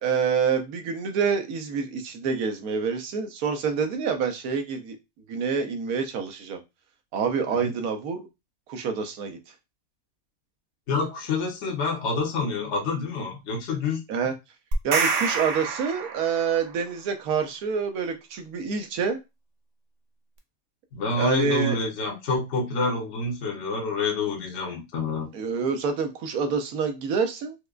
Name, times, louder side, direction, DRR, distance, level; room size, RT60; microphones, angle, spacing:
voice 1, 0.0-5.0 5.3-6.6 7.1-8.2 8.7-9.4 14.1-14.3 14.8-19.2 21.2-21.8 25.3-27.6, right 6 dB, 90° right, 1.2 m, -27 dB
voice 2, 10.9-14.0 20.9-25.3, left 3 dB, 55° left, 1.1 m, -27 dB
sound 1, 14.7-16.7, right 4 dB, 65° right, 0.9 m, -27 dB
4.6 x 2.2 x 2.4 m
omnidirectional pair, 1.5 m